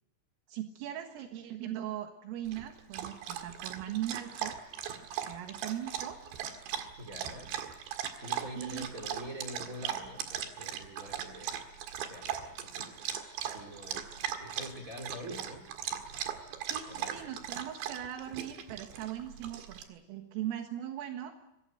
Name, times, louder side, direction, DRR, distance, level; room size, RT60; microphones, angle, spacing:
voice 1, 0.5-4.6 5.0-6.2 8.6-8.9 16.7-21.4, right 11 dB, 80° right, 5 dB, 4.1 m, -39 dB
Dog, 2.4-19.8, right 9 dB, 65° right, 3.8 m, -39 dB
voice 2, 7.0-7.5 8.2-13.0 13.5-14.1 14.4-15.7 16.9-17.3, equal, 25° right, 4 dB, 2.0 m, -45 dB
24.5 x 18.5 x 9.1 m, 0.86 s
omnidirectional pair, 5.9 m